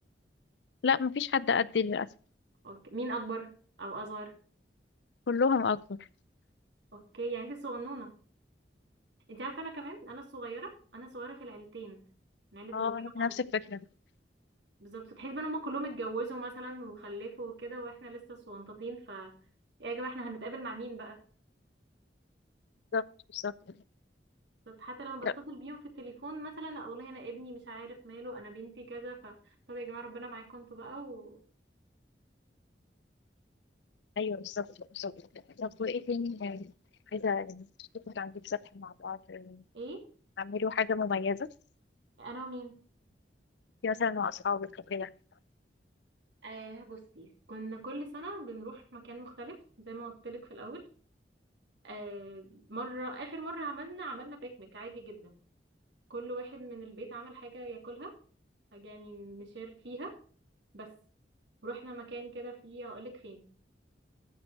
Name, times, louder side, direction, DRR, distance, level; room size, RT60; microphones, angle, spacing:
voice 1, 0.8-2.1 5.3-6.0 12.7-13.9 22.9-23.0 23.3-23.5 25.2-25.3 34.2-34.7 34.9-35.1 35.6-36.7 37.1-37.7 38.1-39.6 40.4-41.5 43.8-45.1, left 5 dB, 80° left, 0.5 m, -31 dB
voice 2, 2.6-4.3 6.9-8.1 9.3-12.1 12.5-13.4 14.8-19.4 19.8-21.2 24.7-31.4 39.7-40.1 42.2-42.8 46.4-50.9 51.8-55.4 56.1-58.2 58.7-60.2 60.7-61.0 61.6-63.5, right 2 dB, 90° right, 2.7 m, -41 dB
14.0 x 5.2 x 4.7 m
head